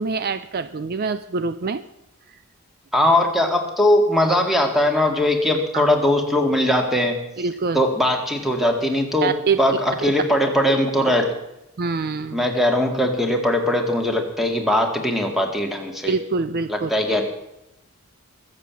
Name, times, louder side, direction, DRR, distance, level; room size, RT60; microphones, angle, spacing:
voice 1, 0.0-1.8 5.7-5.9 7.4-7.8 9.2-9.8 11.8-12.4 16.1-16.9, right 4 dB, 45° right, 12 dB, 0.5 m, -25 dB
voice 2, 2.9-7.2 7.7-9.3 9.6-11.3 12.3-16.2 16.7-17.2, left 1 dB, ahead, 3 dB, 2.1 m, -20 dB
22.0 x 7.7 x 7.0 m, 0.86 s
head